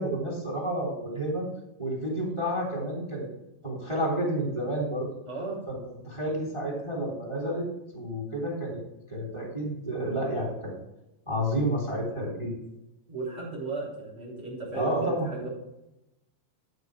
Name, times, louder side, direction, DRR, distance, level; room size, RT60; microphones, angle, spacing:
voice 1, 0.0-1.5 1.8-3.3 3.6-5.1 5.7-5.8 6.0-7.7 7.9-8.8 9.1-10.7 11.3-12.5 14.7-15.3, right 1 dB, 10° right, -1 dB, 2.5 m, -30 dB
voice 2, 5.3-5.6 13.1-15.5, right 3 dB, 35° right, -4 dB, 4.1 m, -35 dB
13.5 x 5.3 x 4.9 m, 0.90 s
omnidirectional pair, 4.3 m